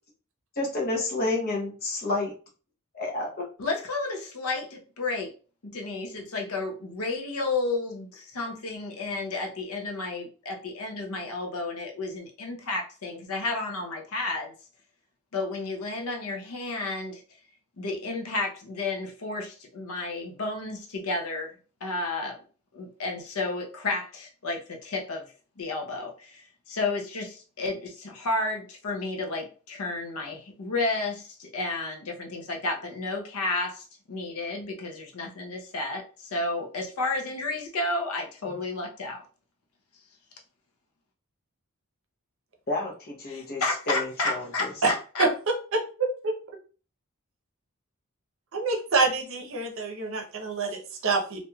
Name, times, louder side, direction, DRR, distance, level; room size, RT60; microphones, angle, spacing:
voice 1, 0.6-2.3 2.9-3.4 42.7-44.7, left 2 dB, 45° left, -1 dB, 0.9 m, -30 dB
voice 2, 3.6-5.3 5.6-14.5 15.3-17.2 17.8-21.5 21.8-22.4 22.7-25.2 25.6-39.2 43.3-45.3, left 2 dB, 85° left, 2 dB, 0.7 m, -32 dB
voice 3, 45.7-46.4 48.5-51.4, right 3 dB, 65° right, 3 dB, 0.7 m, -26 dB
3.0 x 2.6 x 2.2 m, 0.38 s
head